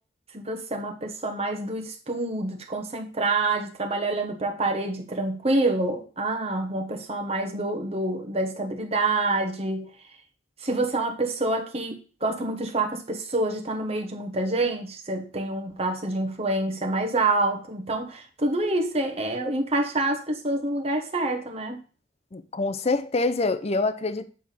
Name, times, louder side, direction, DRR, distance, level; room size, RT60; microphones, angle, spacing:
voice 1, 0.3-9.9 10.6-21.8, right 2 dB, 35° right, 1.3 m, -27 dB
voice 2, 22.3-24.3, left 3 dB, 35° left, 0.5 m, -25 dB
8.4 x 3.6 x 5.8 m
head